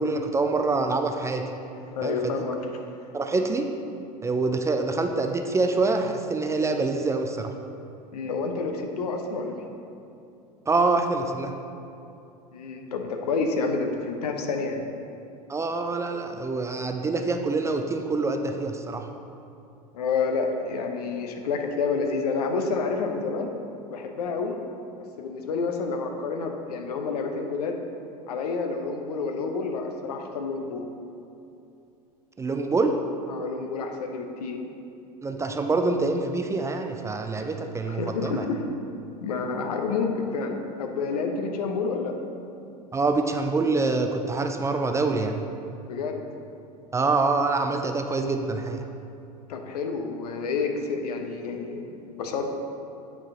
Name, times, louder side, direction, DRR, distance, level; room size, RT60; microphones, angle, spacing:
voice 1, 0.0-1.4 2.0-2.4 3.1-3.7 4.2-7.5 10.7-11.5 15.5-19.1 32.4-33.0 35.2-38.4 42.9-45.4 46.9-48.8, right 3 dB, 15° right, 5 dB, 0.4 m, -25 dB
voice 2, 1.9-2.7 8.1-9.7 12.5-14.9 19.9-23.5 23.8-24.5 25.2-27.8 28.3-30.9 33.3-34.6 37.9-38.6 39.2-42.2 45.9-46.2 49.5-52.5, left 4 dB, 70° left, 4 dB, 0.8 m, -29 dB
8.5 x 4.8 x 3.7 m, 2.7 s
figure-of-eight pair, 80°, 21 cm